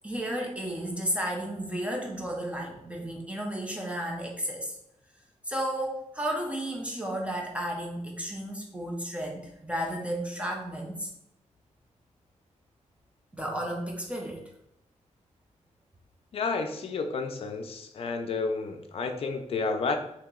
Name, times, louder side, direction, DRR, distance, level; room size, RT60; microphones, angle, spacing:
voice 1, 0.0-4.8 5.5-11.1 13.3-14.4, right 1 dB, 10° right, -1 dB, 0.5 m, -33 dB
voice 2, 16.3-20.0, left 4 dB, 50° left, 5 dB, 0.4 m, -31 dB
2.9 x 2.7 x 3.6 m, 0.78 s
wide cardioid pair, 180°, 13 cm